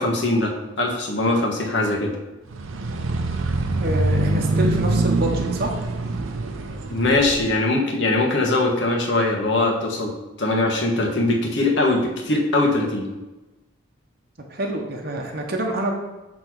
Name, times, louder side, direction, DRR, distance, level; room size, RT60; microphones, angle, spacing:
voice 1, 0.0-2.1 6.9-13.1, left 2 dB, 55° left, -1 dB, 1.3 m, -21 dB
sound 1, 2.5-7.5, right 2 dB, 75° right, 0.7 m, -24 dB
voice 2, 3.8-5.7 14.5-15.9, right 1 dB, 45° right, 0 dB, 0.9 m, -26 dB
7.8 x 4.2 x 4.6 m, 1.1 s
head